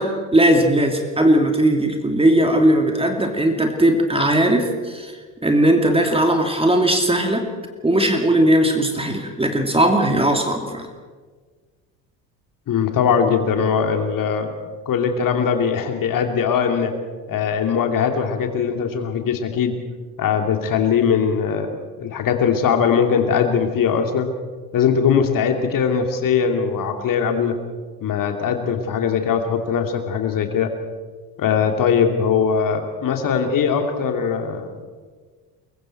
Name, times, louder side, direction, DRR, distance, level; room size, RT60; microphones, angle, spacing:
voice 1, 0.0-5.1 5.4-7.5 7.8-10.9, right 1 dB, 10° right, 3 dB, 2.8 m, -18 dB
voice 2, 12.7-14.5 14.9-16.9 17.3-19.8 20.2-21.7 22.0-24.3 24.7-27.6 28.0-30.7 31.4-34.8, left 7 dB, 40° left, 5 dB, 2.8 m, -20 dB
29.5 x 23.0 x 4.6 m, 1.5 s
figure-of-eight pair, 60°, 49 cm